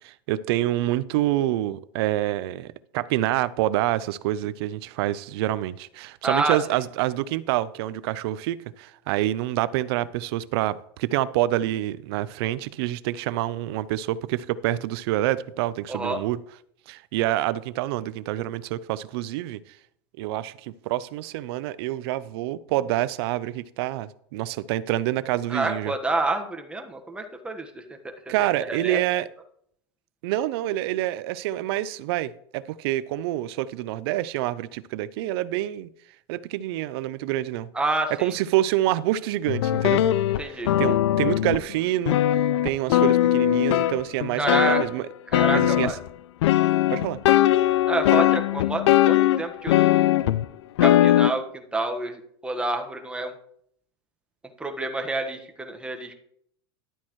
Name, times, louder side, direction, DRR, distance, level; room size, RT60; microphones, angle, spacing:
voice 1, 0.0-16.4 16.9-19.6 20.2-25.9 28.3-29.3 30.2-35.9 36.3-37.7 38.2-40.0 40.8-42.2 42.6-45.0 45.5-45.9 46.9-47.2, right 14 dB, 65° right, 0.6 m, -27 dB
voice 2, 6.2-6.8 15.9-16.2 25.5-28.0 28.4-29.0 37.7-38.3 40.4-40.7 44.4-44.8 45.3-46.0 47.9-50.1 50.8-53.3 54.6-56.1, right 2 dB, 5° right, 1.4 m, -28 dB
sound 1, 39.5-41.7 42.1-44.9 45.3-46.1 46.4-50.4 50.8-51.3, left 13 dB, 80° left, 0.5 m, -20 dB
12.0 x 8.5 x 3.1 m
supercardioid pair, 125°, 14 cm